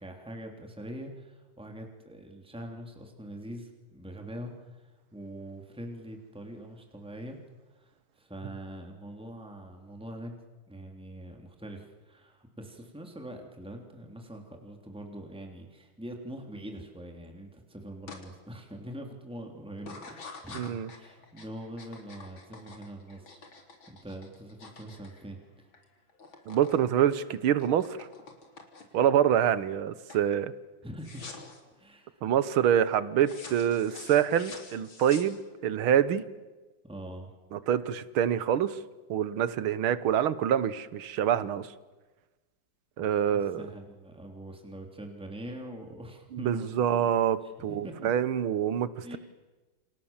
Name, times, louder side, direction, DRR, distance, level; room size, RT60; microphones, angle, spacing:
voice 1, 0.0-4.8 5.1-7.4 7.7-7.9 8.2-10.3 10.7-23.4 23.9-25.4 30.8-31.3 31.8-32.2 36.8-37.3 43.0-46.8 47.4-48.1 49.0-49.2, right 1 dB, ahead, 3 dB, 3.2 m, -43 dB
sound 1, 18.1-18.2 18.7-19.1 19.8-25.8 26.1-26.8 27.1-29.1 29.6-29.8 30.1-30.3 31.0-31.6 33.2-35.7, left 3 dB, 70° left, 4.0 m, -47 dB
voice 2, 20.5-20.9 26.5-28.1 28.9-30.5 32.2-35.4 35.6-36.2 37.5-38.8 39.1-41.7 43.0-43.6 46.3-47.4 47.6-49.2, right 9 dB, 80° right, 15 dB, 1.9 m, -26 dB
28.5 x 26.5 x 7.3 m, 1.2 s
omnidirectional pair, 2.3 m